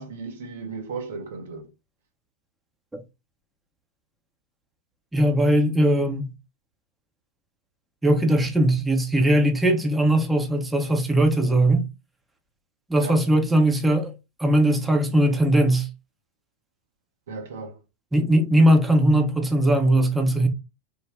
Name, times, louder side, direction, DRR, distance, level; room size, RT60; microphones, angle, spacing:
voice 1, 0.0-1.7 13.0-13.3 17.3-17.8, right 4 dB, 60° right, 0.7 m, -35 dB
voice 2, 5.1-6.3 8.0-11.8 12.9-14.1 14.4-15.9 18.1-20.5, right 1 dB, 10° right, 0.7 m, -20 dB
3.6 x 2.1 x 3.3 m
figure-of-eight pair, 90°, 0 cm